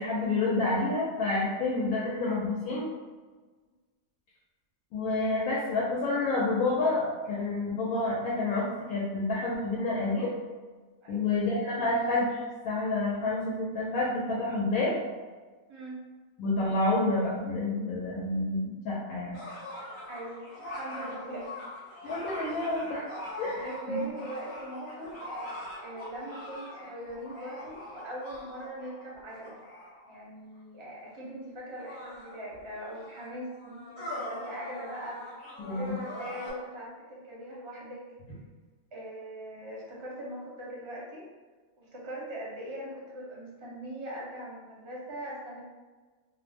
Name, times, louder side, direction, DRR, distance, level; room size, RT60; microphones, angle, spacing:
voice 1, 0.0-2.9 4.9-10.3 11.1-15.0 16.4-19.4 22.0-23.1 23.4-24.0 35.6-36.0, left 2 dB, 90° left, -6 dB, 1.0 m, -29 dB
voice 2, 15.7-16.0 20.1-20.4 20.7-21.5 23.5-25.2 25.8-29.6 30.1-38.0 38.9-41.2 41.8-45.6, right 1 dB, 30° right, -5 dB, 0.5 m, -41 dB
sound 1, 19.3-30.1 31.0-31.1 31.7-36.5, left 1 dB, 50° left, 1.0 m, -42 dB
2.5 x 2.0 x 3.3 m, 1.4 s
omnidirectional pair, 1.4 m